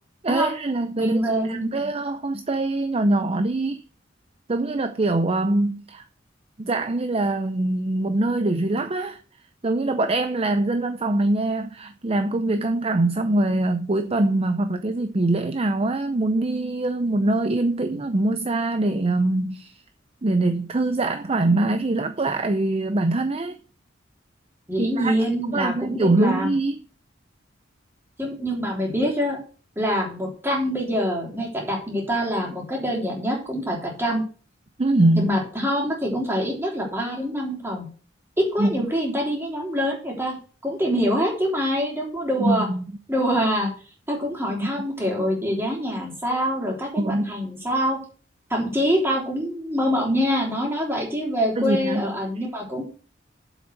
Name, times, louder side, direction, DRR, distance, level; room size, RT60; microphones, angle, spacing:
voice 1, 0.2-1.2 1.4-3.8 4.5-6.0 6.6-9.2 9.6-19.8 20.2-23.6 24.8-25.1 25.5-26.8 34.8-35.3 38.6-38.7 42.4-42.8 47.0-47.4 51.6-52.1, right 2 dB, 30° right, 0.6 m, -23 dB
voice 2, 1.0-1.9 24.7-26.5 28.2-29.4 29.7-34.2 35.2-37.9 38.4-40.4 40.6-42.7 43.1-43.7 44.1-48.0 48.5-52.9, equal, 15° right, 3.4 m, -25 dB
7.7 x 6.1 x 6.4 m
head